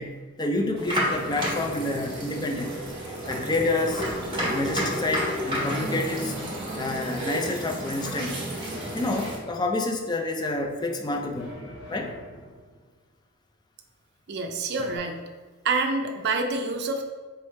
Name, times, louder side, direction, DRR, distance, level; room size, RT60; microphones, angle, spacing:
voice 1, 0.0-2.8 3.3-4.0 4.4-6.3 6.8-8.5 8.9-11.6 11.9-12.1, left 2 dB, 20° left, 3 dB, 0.3 m, -28 dB
sound 1, 0.8-9.4, equal, 25° right, 1.2 m, -31 dB
sound 2, 1.3-2.9 3.9-5.4 6.4-7.7 8.7-10.1 11.3-12.9 14.8-15.0, equal, 55° left, 1.3 m, -43 dB
voice 2, 14.3-15.2 15.6-17.0, right 3 dB, 50° right, 4 dB, 0.4 m, -27 dB
4.6 x 3.0 x 3.2 m, 1.3 s
head